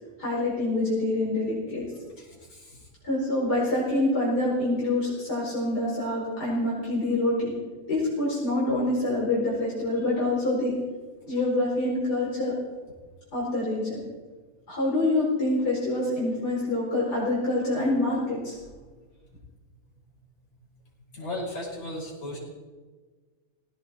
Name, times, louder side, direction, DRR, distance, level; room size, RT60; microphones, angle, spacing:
voice 1, 0.2-1.8 3.0-7.5 7.9-10.8 11.3-12.5 13.3-14.0 14.7-18.6, left 2 dB, 80° left, -6 dB, 5.5 m, -26 dB
voice 2, 2.2-2.9 21.1-22.4, left 1 dB, 60° left, -5 dB, 6.6 m, -36 dB
18.0 x 18.0 x 4.3 m, 1.4 s
omnidirectional pair, 1.7 m